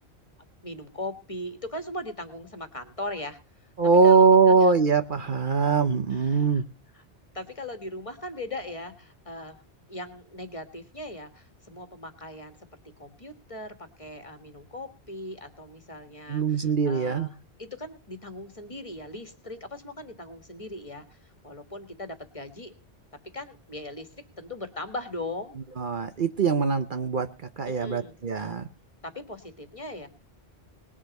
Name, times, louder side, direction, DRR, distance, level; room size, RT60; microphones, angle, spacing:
voice 1, 0.6-3.4 4.0-4.7 6.1-6.6 6.9-7.0 7.3-9.6 9.9-12.6 13.0-22.7 23.3-24.1 24.4-25.6 27.6-28.5 29.0-30.1, left 1 dB, 30° left, 8 dB, 1.7 m, -39 dB
voice 2, 3.8-6.6 16.3-17.3 25.8-27.3 27.6-28.7, right 5 dB, 50° right, 10 dB, 0.9 m, -22 dB
19.5 x 7.4 x 5.3 m, 0.35 s
omnidirectional pair, 1.1 m